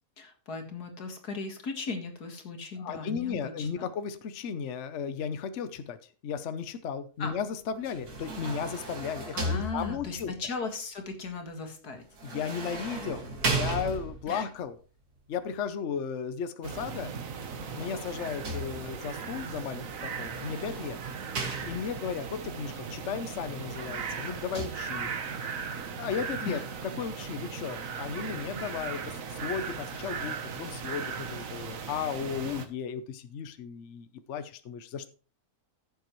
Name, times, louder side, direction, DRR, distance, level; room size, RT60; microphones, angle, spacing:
voice 1, 0.2-3.9 7.2-7.4 9.3-12.0 14.3-14.5 26.4-26.6, left 4 dB, 90° left, 5 dB, 2.3 m, -37 dB
voice 2, 2.8-6.0 6.2-10.3 12.2-14.8 15.3-17.1 17.7-21.0 21.7-25.1 25.9-26.6 27.0-35.1, left 7 dB, 55° left, 11 dB, 1.0 m, -35 dB
sound 1, 7.8-10.3 12.2-14.4 17.3-19.1 20.1-22.1 23.5-24.7, right 2 dB, 75° right, 2.5 m, -36 dB
sound 2, 16.6-32.7, right 6 dB, 60° right, 1.4 m, -38 dB
15.0 x 7.0 x 3.1 m, 0.38 s
omnidirectional pair, 1.6 m